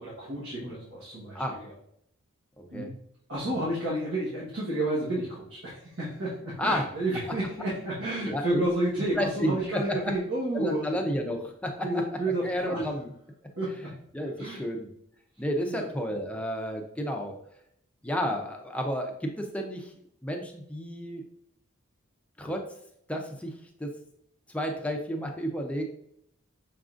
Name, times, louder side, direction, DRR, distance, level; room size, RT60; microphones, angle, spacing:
voice 1, 0.0-1.7 2.7-2.9 3.3-11.0 11.8-12.8 13.6-13.9 14.4-14.6 15.7-15.8, right 1 dB, 65° right, -8 dB, 1.2 m, -31 dB
voice 2, 2.6-2.9 6.6-6.9 8.2-8.7 9.2-10.0 10.5-11.8 12.3-13.1 14.1-14.9 15.4-17.3 18.0-19.9 20.2-21.2 22.4-22.7 23.1-23.9 24.5-25.8, equal, 5° left, 2 dB, 0.5 m, -31 dB
5.9 x 3.7 x 2.5 m, 0.73 s
head